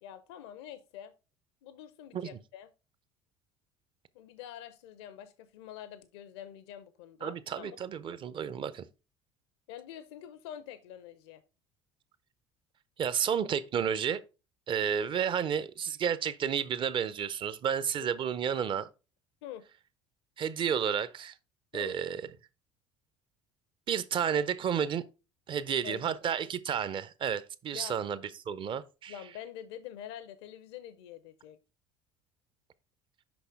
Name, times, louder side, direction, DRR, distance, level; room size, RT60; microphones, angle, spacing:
voice 1, 0.0-1.1 1.6-2.7 4.1-7.8 9.7-11.4 18.0-18.1 19.4-19.6 21.7-22.0 25.8-26.1 27.7-28.0 29.1-31.6, left 10 dB, 60° left, 0.5 m, -46 dB
voice 2, 7.2-8.9 13.0-14.2 14.7-18.9 20.4-21.3 21.7-22.2 23.9-25.0 25.5-29.1, right 8 dB, 35° right, 0.6 m, -31 dB
6.0 x 5.5 x 3.4 m
figure-of-eight pair, 60°, 15 cm